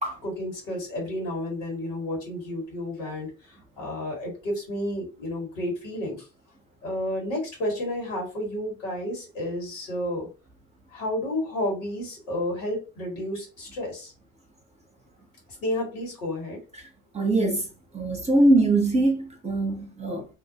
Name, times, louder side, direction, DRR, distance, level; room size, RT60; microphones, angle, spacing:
voice 1, 0.2-6.3 6.8-10.3 10.9-14.1 15.6-16.6, left 1 dB, 80° left, 1.5 m, -31 dB
voice 2, 17.1-17.7 17.9-20.3, right 2 dB, 15° right, 0.7 m, -22 dB
2.6 x 2.0 x 2.7 m
hypercardioid pair, 60°, 39 cm